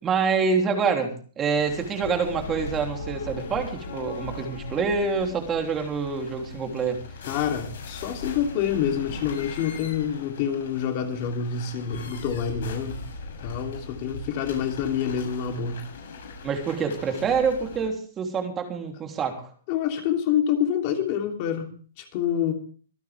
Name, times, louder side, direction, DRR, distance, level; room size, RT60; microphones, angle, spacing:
voice 1, 0.0-7.0 16.4-19.5, right 5 dB, 20° right, 3 dB, 3.3 m, -26 dB
sound 1, 1.6-17.9, left 3 dB, 65° left, 7.7 m, -39 dB
voice 2, 7.3-13.0 13.4-15.8 19.7-21.7 22.0-22.5, left 8 dB, 45° left, 3 dB, 3.1 m, -27 dB
25.5 x 9.3 x 3.5 m, 0.42 s
hypercardioid pair, 135°, 0 cm